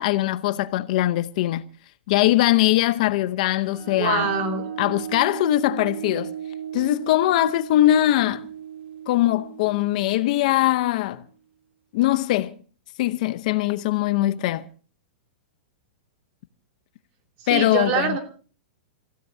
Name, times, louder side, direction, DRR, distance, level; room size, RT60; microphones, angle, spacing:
voice 1, 0.0-1.6 2.1-4.3 4.8-6.3 6.7-8.4 9.1-11.2 11.9-12.6 13.0-14.6 17.5-18.2, left 15 dB, 45° left, 0.8 m, -21 dB
sound 1, 3.6-11.1, right 9 dB, 75° right, 1.8 m, -36 dB
voice 2, 4.0-4.6 17.4-18.2, right 6 dB, 30° right, 2.9 m, -24 dB
30.0 x 16.5 x 2.8 m
supercardioid pair, 170°, 6 cm